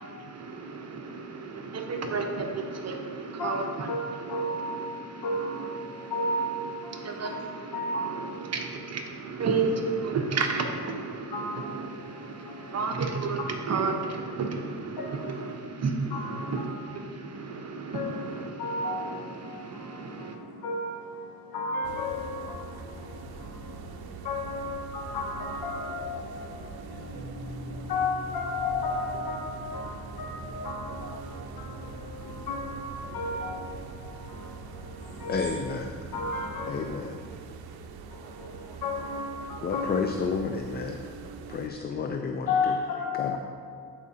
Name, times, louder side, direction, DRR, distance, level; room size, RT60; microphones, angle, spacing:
voice 1, 0.0-20.4, right 4 dB, 40° right, 3 dB, 0.8 m, -33 dB
voice 2, 4.3-5.0 5.2-7.4 7.7-8.5 11.3-12.8 15.0-15.6 16.1-16.7 17.9-35.5 36.1-36.9 38.1-39.9 42.5-43.4, left 2 dB, 70° left, 0 dB, 0.9 m, -34 dB
sound 1, 21.8-41.7, right 4 dB, 70° right, 0.6 m, -43 dB
sound 2, 27.1-37.3, equal, 10° right, 1.2 m, -48 dB
voice 3, 35.3-35.9 36.7-37.2 39.6-41.0 41.5-42.5 43.2-43.4, left 5 dB, 25° left, 4 dB, 0.4 m, -30 dB
12.0 x 4.9 x 2.8 m, 2.2 s
cardioid pair, 95°, 39 cm